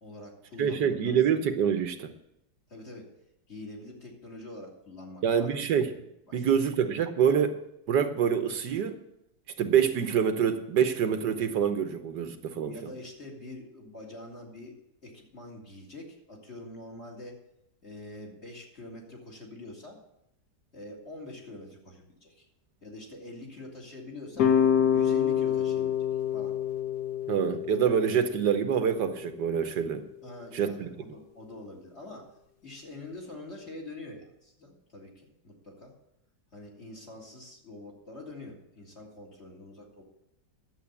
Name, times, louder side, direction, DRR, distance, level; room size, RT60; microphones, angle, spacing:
voice 1, 0.0-1.0 2.7-3.1 3.5-5.6 5.9-6.6 12.6-14.7 15.0-17.4 17.8-20.0 20.7-22.5 22.8-24.6 24.9-26.6 30.2-32.3 32.6-35.9 36.5-40.0, left 2 dB, 40° left, -1 dB, 3.1 m, -45 dB
voice 2, 0.6-2.1 5.2-5.9 6.3-7.6 7.9-9.0 9.6-12.7 27.3-30.0 30.5-30.9, right 8 dB, 75° right, 8 dB, 1.6 m, -26 dB
sound 1, 24.4-29.5, left 9 dB, 65° left, 1.5 m, -27 dB
11.0 x 7.9 x 8.3 m, 0.81 s
omnidirectional pair, 1.8 m